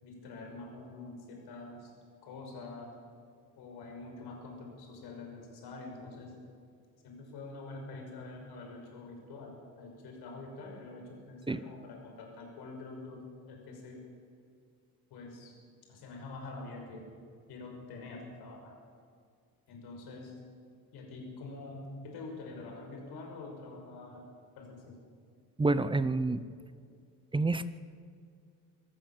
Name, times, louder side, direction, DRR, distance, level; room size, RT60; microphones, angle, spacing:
voice 1, 0.0-1.9 2.2-2.9 3.6-6.3 7.0-14.0 15.1-15.5 15.9-17.1 17.5-18.8 19.7-20.4 20.9-24.2 24.6-25.0, left 3 dB, 70° left, 2 dB, 6.0 m, -46 dB
voice 2, 25.6-26.4 27.3-27.7, right 3 dB, 15° right, 14 dB, 0.7 m, -28 dB
26.0 x 14.5 x 7.5 m, 2.2 s
cardioid pair, 125°, 39 cm